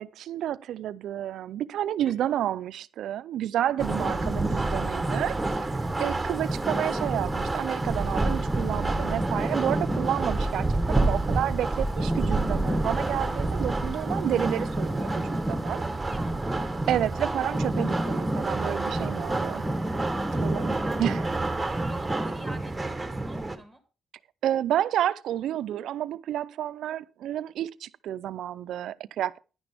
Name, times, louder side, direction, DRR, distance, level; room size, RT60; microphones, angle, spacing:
voice 1, 0.0-5.4 6.0-15.8 16.9-19.6 20.4-21.2 21.6-21.7 24.4-29.4, right 11 dB, 75° right, 0.4 m, -30 dB
sound 1, 3.8-23.6, right 2 dB, 15° right, 1.0 m, -28 dB
voice 2, 16.0-16.4 20.1-21.1 21.7-23.8, right 1 dB, ahead, 1.8 m, -45 dB
10.5 x 9.9 x 3.4 m
cardioid pair, 90°, 0 cm